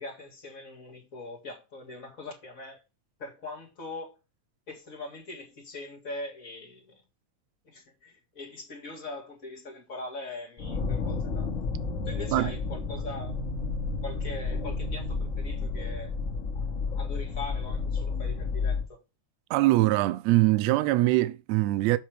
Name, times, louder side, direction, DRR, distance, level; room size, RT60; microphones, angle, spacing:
voice 1, 0.0-2.8 3.2-4.1 4.7-7.0 7.6-11.6 12.1-13.4 14.0-16.1 16.5-19.0, left 2 dB, 30° left, 2.3 m, -41 dB
sound 1, 10.6-18.9, left 4 dB, 55° left, 0.8 m, -31 dB
voice 2, 19.5-22.0, right 18 dB, 80° right, 1.6 m, -23 dB
7.7 x 4.3 x 4.9 m
omnidirectional pair, 3.4 m